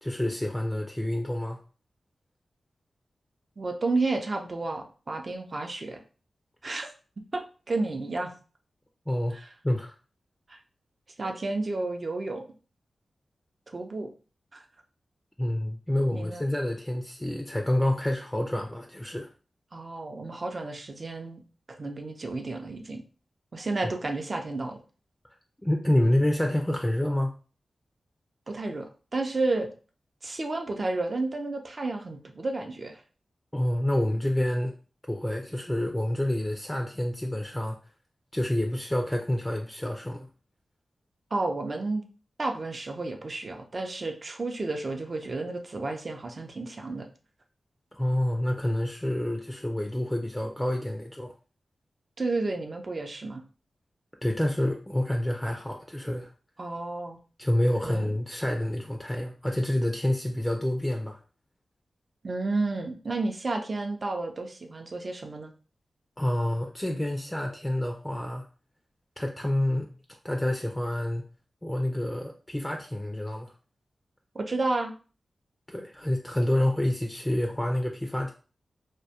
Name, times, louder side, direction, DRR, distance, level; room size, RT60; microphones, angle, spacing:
voice 1, 0.0-1.6 9.1-9.4 9.6-9.9 15.4-19.3 25.6-27.4 33.5-34.7 35.1-37.8 38.3-40.3 47.9-51.3 54.2-56.3 57.4-61.2 66.2-68.5 69.2-69.9 70.2-71.2 71.6-73.5 75.7-78.3, left 1 dB, 10° left, 3 dB, 0.3 m, -28 dB
voice 2, 3.6-6.0 6.6-6.9 7.3-7.4 7.7-8.3 9.3-9.5 10.5-10.6 11.2-12.4 13.7-14.1 14.5-14.6 16.1-16.4 19.7-21.4 21.7-23.0 23.5-24.8 28.5-29.7 30.2-33.0 41.3-42.0 42.4-47.1 52.2-53.4 56.6-57.2 57.8-58.1 62.2-65.5 74.3-74.9, right 2 dB, 50° right, 4 dB, 0.5 m, -31 dB
2.2 x 2.1 x 2.7 m, 0.37 s
cardioid pair, 40°, 0 cm